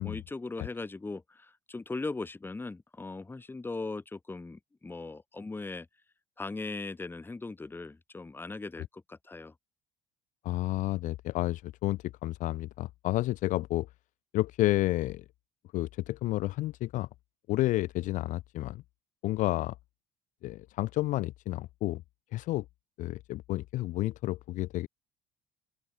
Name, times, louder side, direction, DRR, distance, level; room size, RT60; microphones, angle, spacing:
voice 1, 0.0-5.9 6.4-9.5, left 3 dB, 10° left, 1.0 m, -39 dB
voice 2, 10.4-13.9 14.3-15.2 15.7-17.1 17.5-18.8 19.2-19.8 20.4-22.0 22.3-22.6 23.0-24.9, left 17 dB, 50° left, 0.7 m, -30 dB
open air
figure-of-eight pair, 55°, 17 cm